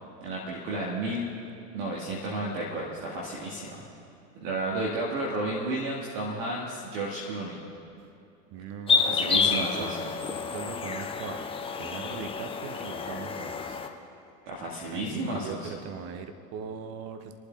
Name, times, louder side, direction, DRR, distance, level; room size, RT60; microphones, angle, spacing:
voice 1, 0.2-1.3 1.7-3.8 4.4-7.6 9.0-10.1 14.5-15.7, right 2 dB, 45° right, -3 dB, 1.8 m, -32 dB
voice 2, 8.5-9.9 10.5-11.5 11.8-13.8 14.9-17.3, right 6 dB, 30° right, 9 dB, 0.8 m, -40 dB
sound 1, 8.9-13.9, left 5 dB, 10° left, 0.6 m, -29 dB
30.0 x 11.5 x 2.4 m, 2.6 s
figure-of-eight pair, 80°, 49 cm